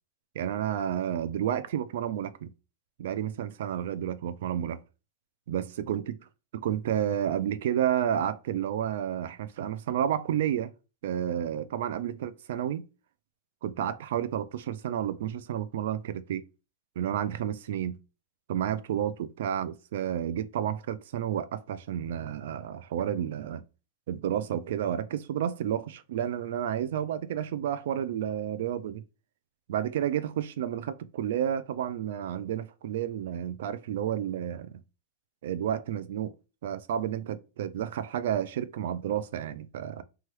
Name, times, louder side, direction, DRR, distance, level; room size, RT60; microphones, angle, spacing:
voice 1, 0.3-2.5 3.0-4.8 5.5-6.2 6.5-10.7 11.0-12.8 13.6-16.5 17.0-18.0 18.5-23.6 24.1-29.0 29.7-34.8 35.4-36.3 36.6-40.0, right 10 dB, 75° right, 0.3 m, -31 dB
3.0 x 2.2 x 3.0 m
supercardioid pair, 145°, 0 cm